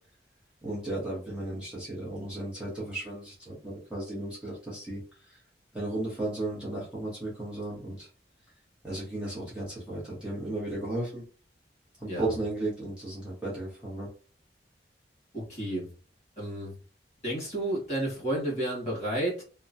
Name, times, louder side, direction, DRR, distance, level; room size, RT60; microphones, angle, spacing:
voice 1, 0.6-5.4 5.7-8.1 8.8-11.2 12.0-14.1, right 2 dB, 5° right, -7 dB, 1.0 m, -35 dB
voice 2, 15.3-15.9 16.4-16.7 17.2-19.4, right 1 dB, 40° left, -3 dB, 1.5 m, -31 dB
2.9 x 2.1 x 2.6 m, 0.37 s
head